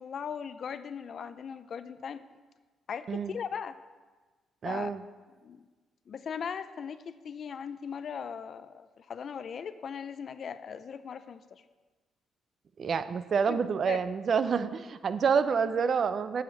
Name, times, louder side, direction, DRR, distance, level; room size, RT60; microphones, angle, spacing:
voice 1, 0.0-2.2 2.9-3.8 4.6-4.9 5.4-5.6 6.1-11.6 13.5-13.6 13.9-14.0, left 7 dB, 55° left, 13 dB, 0.5 m, -39 dB
voice 2, 4.6-5.0 12.8-16.4, right 6 dB, 50° right, 12 dB, 0.5 m, -28 dB
9.2 x 4.9 x 7.1 m, 1.3 s
cardioid pair, 90°, 0 cm